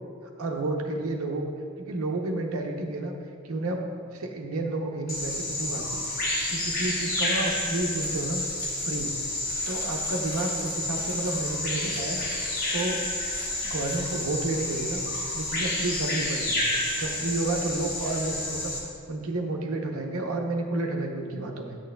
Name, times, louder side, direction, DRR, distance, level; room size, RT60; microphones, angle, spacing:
voice 1, 0.4-1.5 1.8-3.1 3.4-3.8 4.1-6.0 6.5-8.4 8.8-9.1 9.7-12.2 12.7-13.0 13.6-15.0 15.3-16.7 17.0-18.7 19.1-21.8, right 2 dB, 75° right, 2 dB, 0.7 m, -31 dB
Bird vocalization bird call bird song, 5.1-18.8, left 1 dB, 40° left, 1.0 m, -30 dB
9.0 x 6.3 x 2.2 m, 2.2 s
head